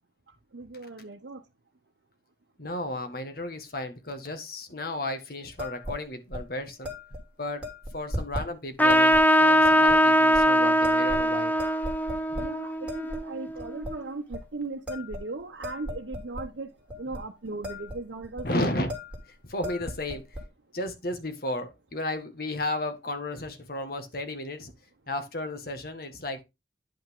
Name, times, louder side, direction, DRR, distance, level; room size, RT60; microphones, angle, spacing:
voice 1, 0.5-1.4 12.4-16.7 17.0-18.7, right 3 dB, 85° right, 0.9 m, -37 dB
voice 2, 2.6-6.9 7.4-7.6 7.9-11.5 12.3-12.4 17.0-17.1 18.4-18.9 19.5-20.3 20.7-24.7 25.1-26.4, left 1 dB, 55° left, 1.7 m, -33 dB
sound 1, 5.6-6.0 6.3-6.5 6.8-7.2 7.6-8.5 8.9-9.2 9.6-10.0 10.3-10.4 10.8-11.3 11.6-12.5 12.9-13.2 13.6-13.9 14.3-14.5 14.9-16.5 16.9-17.2 17.5-18.0 18.2-18.5 18.9-19.2 19.5-20.4, left 1 dB, 5° right, 3.0 m, -36 dB
Trumpet, 8.8-13.8, equal, 10° left, 0.9 m, -22 dB
10.0 x 5.7 x 3.6 m
head